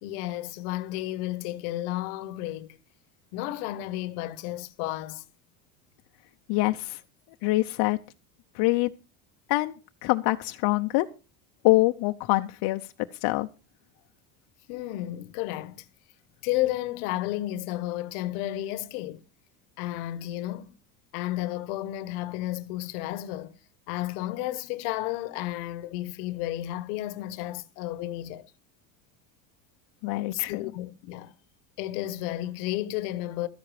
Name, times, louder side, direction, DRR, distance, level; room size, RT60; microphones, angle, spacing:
voice 1, 0.0-2.8 3.3-5.2 14.7-15.9 16.4-19.2 19.8-20.8 21.1-23.5 23.9-28.5 30.3-31.3 31.8-33.5, left 15 dB, 80° left, 1.2 m, -32 dB
voice 2, 6.5-7.0 7.4-8.0 8.5-8.9 9.5-9.7 10.0-11.1 11.6-12.8 13.2-13.5 30.0-30.7, left 20 dB, 60° left, 0.8 m, -24 dB
13.0 x 10.5 x 4.8 m
supercardioid pair, 110°, 44 cm